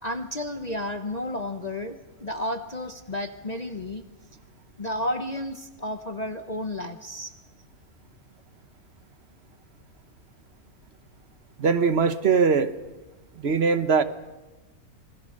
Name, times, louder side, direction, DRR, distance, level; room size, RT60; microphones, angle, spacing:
voice 1, 0.0-4.0 4.8-7.3, left 1 dB, 30° left, 6 dB, 0.9 m, -32 dB
voice 2, 11.6-12.7 13.4-14.0, right 5 dB, 50° right, 11 dB, 1.3 m, -21 dB
27.5 x 20.5 x 6.5 m, 1.2 s
omnidirectional pair, 1.5 m